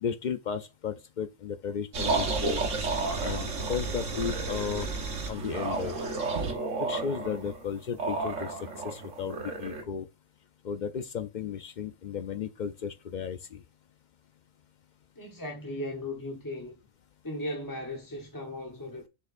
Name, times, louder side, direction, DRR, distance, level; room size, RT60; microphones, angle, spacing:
voice 1, 0.0-2.6 3.2-4.9 5.3-6.0 6.8-10.1 10.6-13.6, left 7 dB, 85° left, 0.4 m, -34 dB
sound 1, 1.9-9.8, right 3 dB, 65° right, 1.6 m, -31 dB
voice 2, 15.1-16.7 17.2-19.1, left 1 dB, 15° left, 1.0 m, -37 dB
7.4 x 6.5 x 2.5 m
omnidirectional pair, 1.4 m